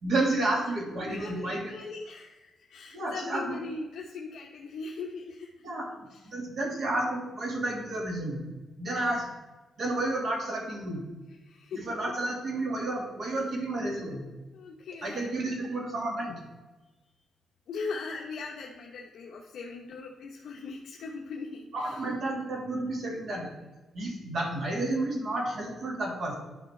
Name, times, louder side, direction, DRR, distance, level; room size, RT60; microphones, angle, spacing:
voice 1, 0.0-1.7 2.9-3.6 5.6-5.9 6.3-8.4 8.8-9.3 9.8-11.0 11.7-14.2 15.0-16.3 21.7-23.5 23.9-26.4, right 2 dB, 45° right, 0 dB, 1.8 m, -31 dB
voice 2, 0.9-5.5 6.1-6.3 11.3-11.8 13.3-13.4 14.5-15.3 17.7-22.1, left 4 dB, 65° left, -1 dB, 0.9 m, -40 dB
11.5 x 5.6 x 3.2 m, 1.1 s
wide cardioid pair, 175°, 0 cm